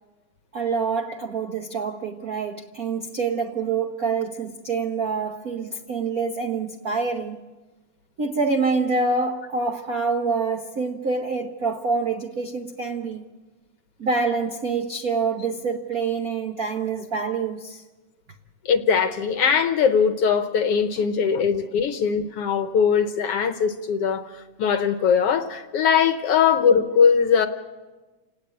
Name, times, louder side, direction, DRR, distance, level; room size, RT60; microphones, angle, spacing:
voice 1, 0.5-7.4 8.2-13.2 14.0-17.8 21.3-21.4, right 4 dB, 70° right, 0.8 m, -26 dB
voice 2, 18.7-27.5, left 6 dB, 65° left, 1.7 m, -21 dB
29.0 x 18.0 x 8.5 m
omnidirectional pair, 3.5 m